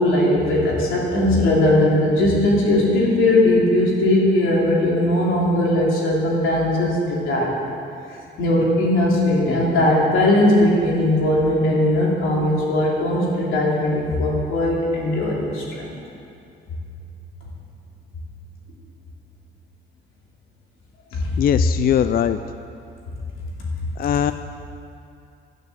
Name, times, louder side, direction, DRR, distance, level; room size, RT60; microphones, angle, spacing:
voice 1, 0.0-7.5 8.4-16.0 21.1-21.3, left 1 dB, 90° left, -3 dB, 3.1 m, -19 dB
voice 2, 21.4-22.4 24.0-24.3, left 9 dB, 50° left, 11 dB, 0.4 m, -20 dB
12.0 x 9.9 x 6.8 m, 2.6 s
cardioid pair, 90°, 20 cm